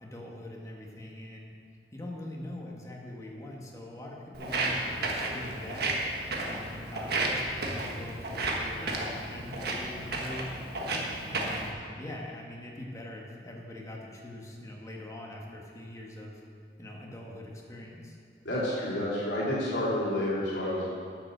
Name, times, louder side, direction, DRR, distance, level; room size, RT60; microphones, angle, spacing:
voice 1, 0.0-1.5 1.9-5.9 6.4-10.5 11.3-16.4 16.8-18.2, left 1 dB, 20° left, -2 dB, 1.5 m, -43 dB
Walk footsteps, 4.3-11.7, right 2 dB, 65° right, 1.5 m, -32 dB
voice 2, 18.4-20.9, left 1 dB, 80° left, -7 dB, 3.2 m, -29 dB
9.8 x 7.2 x 6.7 m, 2.2 s
head